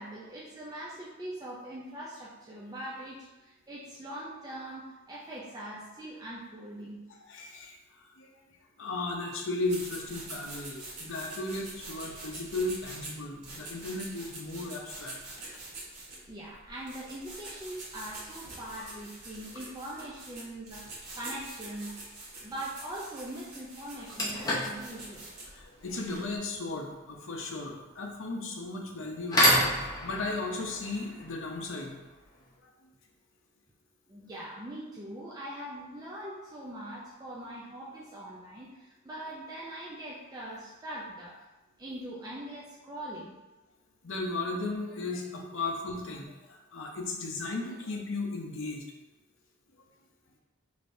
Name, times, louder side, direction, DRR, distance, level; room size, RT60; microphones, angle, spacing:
voice 1, 0.0-7.0 16.3-21.9 22.4-25.3 34.1-41.4 41.8-43.3, right 1 dB, 15° right, -6 dB, 0.4 m, -42 dB
voice 2, 7.3-7.8 8.0-8.3 8.8-15.1 18.8-18.9 25.5-32.0 44.0-48.8, left 2 dB, 60° left, 1 dB, 0.7 m, -35 dB
sound 1, 9.7-26.4, right 2 dB, 85° right, 1.4 m, -45 dB
sound 2, 20.9-21.1 23.2-23.3 23.8-32.5, left 1 dB, 15° left, 0.8 m, -32 dB
5.1 x 3.2 x 2.6 m, 1.1 s
head